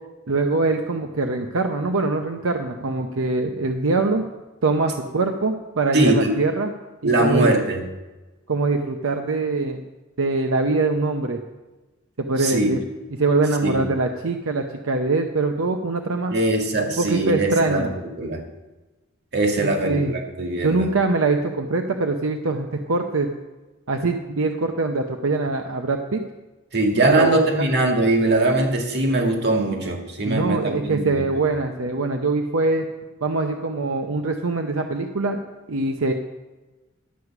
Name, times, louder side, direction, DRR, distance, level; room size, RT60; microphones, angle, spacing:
voice 1, 0.3-4.2 4.6-6.7 7.0-7.5 8.5-9.8 10.2-11.4 12.2-12.8 13.2-16.3 17.0-17.9 19.6-20.1 20.6-23.3 23.9-26.2 27.0-27.6 30.3-32.9 33.2-35.4 35.7-36.1, right 3 dB, 80° right, 4 dB, 0.8 m, -23 dB
voice 2, 5.9-6.3 7.0-7.8 12.4-12.7 13.6-13.8 16.3-17.9 18.2-18.4 19.3-20.9 26.7-31.2, right 2 dB, 55° right, 2 dB, 1.9 m, -21 dB
11.5 x 8.1 x 5.9 m, 1.2 s
head